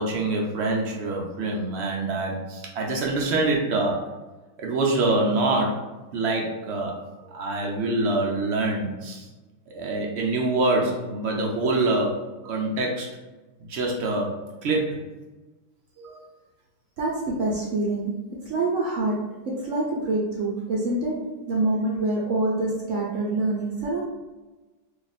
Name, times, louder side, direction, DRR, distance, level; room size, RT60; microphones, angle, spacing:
voice 1, 0.0-4.0 4.6-5.8 6.1-6.9 7.3-9.3 9.7-12.2 12.4-13.1 13.6-14.3 14.6-15.0 16.0-16.2, right 2 dB, 80° right, -1 dB, 0.6 m, -25 dB
voice 2, 17.0-18.2 18.4-21.2 21.5-24.0, right 2 dB, 60° right, -4 dB, 0.9 m, -26 dB
2.8 x 2.4 x 4.0 m, 1.2 s
omnidirectional pair, 1.8 m